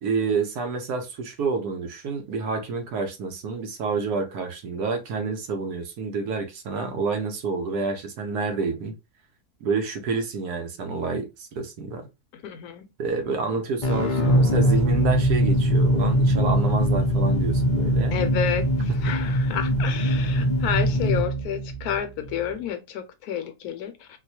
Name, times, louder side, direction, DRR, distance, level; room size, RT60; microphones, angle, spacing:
voice 1, 0.0-8.9 9.6-12.0 13.0-18.2 19.1-19.2, right 4 dB, 75° right, 1.3 m, -28 dB
voice 2, 12.4-12.9 13.3-13.4 18.1-24.2, left 8 dB, 70° left, 1.1 m, -30 dB
sound 1, 13.8-22.5, equal, 50° left, 0.6 m, -22 dB
4.3 x 2.2 x 2.8 m
omnidirectional pair, 1.7 m